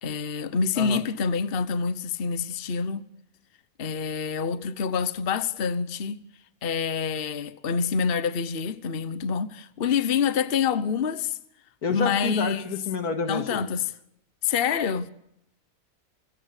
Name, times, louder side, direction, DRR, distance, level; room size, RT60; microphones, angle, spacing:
voice 1, 0.0-3.0 3.8-6.2 6.6-11.4 11.9-12.7 13.3-13.8 14.4-15.1, left 6 dB, 40° left, 1.1 m, -27 dB
voice 2, 11.8-13.6, left 4 dB, 80° left, 2.5 m, -29 dB
26.5 x 16.0 x 8.2 m
omnidirectional pair, 1.6 m